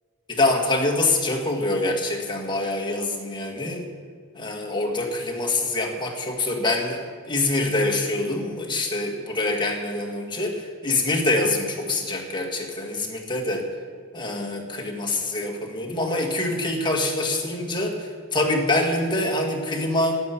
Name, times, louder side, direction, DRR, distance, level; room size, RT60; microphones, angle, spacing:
voice 1, 0.3-3.9 4.3-13.7 14.1-20.2, left 2 dB, 20° left, 1 dB, 2.0 m, -25 dB
11.5 x 8.5 x 9.9 m, 2.1 s
head